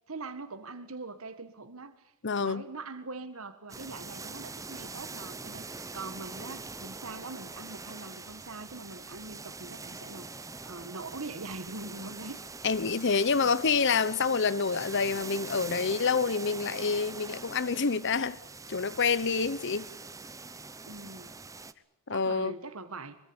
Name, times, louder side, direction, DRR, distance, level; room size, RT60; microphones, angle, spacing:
voice 1, 0.1-12.4 13.1-13.5 20.9-21.3 22.1-23.2, right 3 dB, 65° right, 1.6 m, -43 dB
voice 2, 2.2-2.6 12.6-18.4 18.7-19.9 22.1-22.5, left 5 dB, 55° left, 0.9 m, -27 dB
sound 1, 3.7-21.7, right 4 dB, 15° right, 0.9 m, -43 dB
23.0 x 23.0 x 8.7 m
head